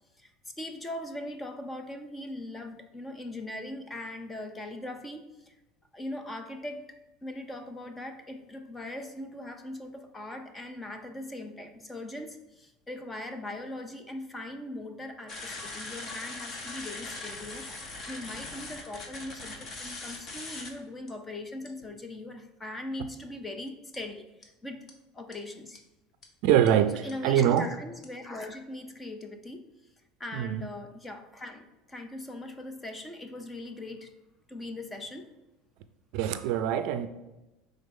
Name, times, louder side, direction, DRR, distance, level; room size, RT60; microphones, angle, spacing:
voice 1, 0.2-5.6 5.9-24.9 25.1-25.8 26.9-29.7 30.2-34.1 34.5-35.3, left 1 dB, 10° left, 6 dB, 0.5 m, -40 dB
sound 1, 15.3-20.7 21.1-21.2 21.7-21.9 23.9-24.0 24.4-24.5 24.9-25.0 25.3-25.4 25.8-25.9 26.2-26.3 26.7-26.8 27.1-27.2 27.6-27.7 28.0-28.1, left 2 dB, 25° left, 0.8 m, -41 dB
voice 2, 26.4-27.7 30.3-30.6 36.1-37.1, right 10 dB, 55° right, 11 dB, 0.4 m, -24 dB
5.2 x 3.8 x 5.3 m, 1.0 s
cardioid pair, 160°, 0 cm